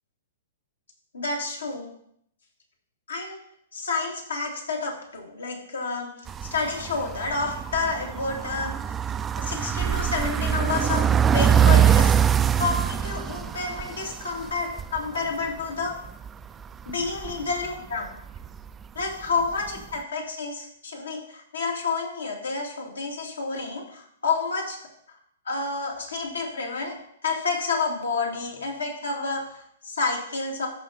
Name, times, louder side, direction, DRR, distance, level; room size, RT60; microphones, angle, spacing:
voice 1, 1.1-1.9 3.1-3.4 3.7-6.1 6.5-8.8 9.4-12.1 12.6-15.9 16.9-18.1 18.9-24.8 25.5-27.0 27.2-30.7, left 4 dB, 80° left, 0 dB, 2.5 m, -29 dB
sound 1, 6.3-15.2 15.5-15.6 15.9-17.7 18.1-18.7 19.0-19.1 19.7-19.8, right 8 dB, 20° right, 0.4 m, -23 dB
13.5 x 5.2 x 4.1 m, 0.69 s
hypercardioid pair, 115°, 0 cm